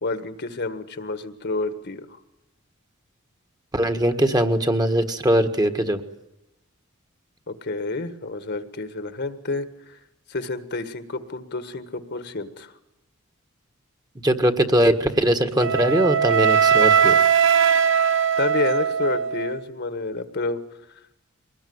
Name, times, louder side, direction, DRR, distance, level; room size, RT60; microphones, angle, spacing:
voice 1, 0.0-2.2 7.5-10.0 10.3-12.7 18.4-20.6, left 3 dB, 50° left, 10 dB, 1.6 m, -29 dB
voice 2, 3.7-6.0 14.2-17.2, right 1 dB, 20° right, 7 dB, 1.6 m, -21 dB
Wind instrument woodwind instrument, 15.6-19.6, right 7 dB, 60° right, 0.9 m, -19 dB
23.5 x 19.5 x 9.6 m, 0.93 s
head